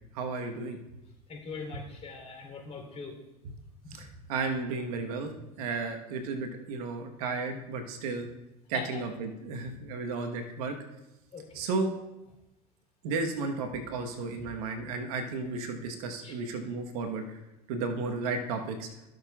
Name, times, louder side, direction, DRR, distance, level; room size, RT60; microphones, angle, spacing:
voice 1, 0.1-0.8 3.9-8.3 8.7-10.7 11.5-11.9 13.0-17.2 17.7-18.9, right 3 dB, 70° right, 5 dB, 1.2 m, -33 dB
voice 2, 1.3-3.1 3.9-4.1 8.7-9.0 11.3-11.6 16.2-16.3, left 4 dB, 35° left, 0 dB, 3.3 m, -42 dB
16.0 x 6.6 x 2.4 m, 0.94 s
hypercardioid pair, 80°, 20 cm